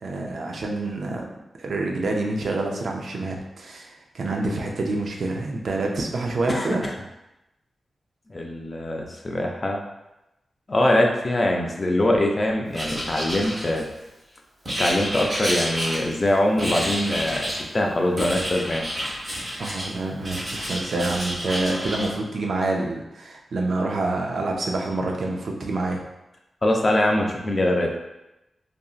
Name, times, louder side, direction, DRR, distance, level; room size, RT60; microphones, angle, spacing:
voice 1, 0.0-1.2 1.6-3.9 4.1-6.8 19.6-26.0, right 2 dB, 65° right, 1 dB, 0.4 m, -27 dB
voice 2, 6.5-6.9 8.3-9.8 10.7-13.8 14.8-18.9 26.6-28.0, left 1 dB, 30° left, 1 dB, 0.3 m, -23 dB
Writing, 12.7-14.1 14.6-16.3 16.6-17.6 18.2-19.9 20.2-22.1, equal, 30° right, 0.8 m, -29 dB
2.8 x 2.5 x 2.4 m, 0.93 s
wide cardioid pair, 150°, 0 cm